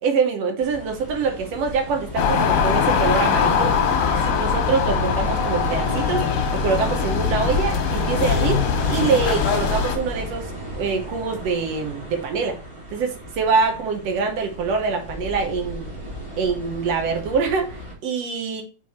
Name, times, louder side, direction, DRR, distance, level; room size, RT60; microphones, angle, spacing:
voice 1, 0.0-3.8 4.2-6.3 6.5-8.6 8.9-12.6 12.9-15.9 16.4-18.6, right 5 dB, 65° right, 4 dB, 1.8 m, -24 dB
sound 1, 0.6-17.9, right 1 dB, 10° right, 1.7 m, -34 dB
sound 2, 2.2-10.0, left 6 dB, 90° left, 2.6 m, -21 dB
6.0 x 4.1 x 4.2 m, 0.38 s
omnidirectional pair, 3.8 m